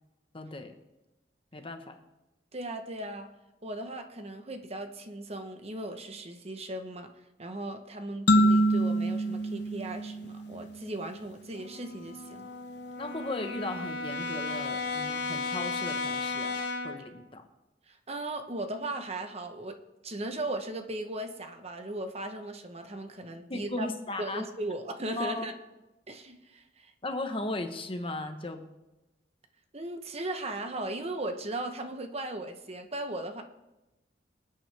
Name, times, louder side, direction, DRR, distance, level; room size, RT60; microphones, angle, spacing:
voice 1, 0.3-0.7 1.5-2.0 13.0-17.4 23.5-24.4 25.2-25.5 27.0-28.6, left 2 dB, 30° left, 6 dB, 1.2 m, -36 dB
voice 2, 2.5-3.3 3.6-7.1 7.4-12.5 17.9-19.8 20.0-23.9 24.2-25.5 26.1-26.9 29.7-33.4, right 2 dB, 35° right, 6 dB, 1.1 m, -37 dB
sound 1, 8.3-10.9, right 1 dB, 70° left, 0.9 m, -25 dB
Brass instrument, 11.5-17.1, left 3 dB, 90° left, 1.5 m, -35 dB
24.5 x 9.0 x 3.5 m, 0.99 s
head